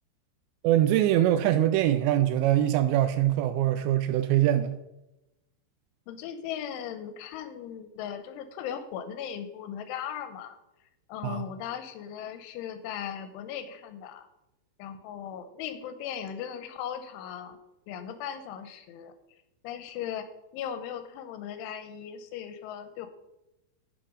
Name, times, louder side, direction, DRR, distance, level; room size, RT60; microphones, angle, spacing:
voice 1, 0.6-4.8 11.2-11.5, right 12 dB, 85° right, 2.5 m, -23 dB
voice 2, 6.1-10.6 11.1-14.3 14.8-17.6 17.9-19.1 19.6-20.3 20.5-23.1, left 9 dB, 85° left, 3.2 m, -38 dB
10.0 x 7.6 x 5.1 m
omnidirectional pair, 5.6 m